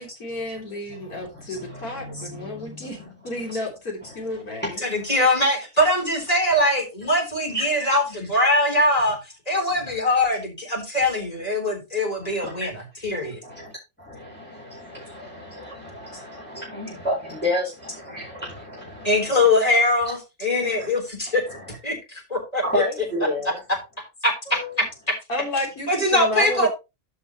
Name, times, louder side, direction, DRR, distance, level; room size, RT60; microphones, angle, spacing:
voice 1, 0.0-3.0 3.2-4.8 25.3-26.7, left 1 dB, 85° left, 3.6 m, -31 dB
voice 2, 0.9-3.5 4.0-5.0 7.5-7.7 12.2-12.7 13.2-13.7 14.0-19.5 20.6-20.9 21.3-21.8 22.6-23.6 24.5-24.7, left 1 dB, 5° left, 4.6 m, -32 dB
voice 3, 4.2-13.4 19.0-21.4 21.8-22.8 24.2-24.3 25.9-26.7, left 1 dB, 25° left, 3.9 m, -22 dB
13.5 x 5.7 x 3.0 m
omnidirectional pair, 1.5 m